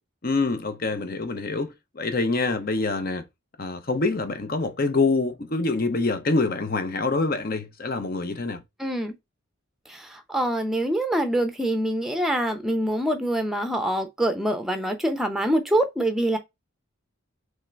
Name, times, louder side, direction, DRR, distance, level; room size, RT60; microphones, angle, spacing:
voice 1, 0.2-3.3 3.6-8.6, left 3 dB, 45° left, 0.7 m, -25 dB
voice 2, 8.8-9.1 9.9-16.4, right 1 dB, ahead, 0.7 m, -25 dB
3.7 x 3.3 x 4.4 m
head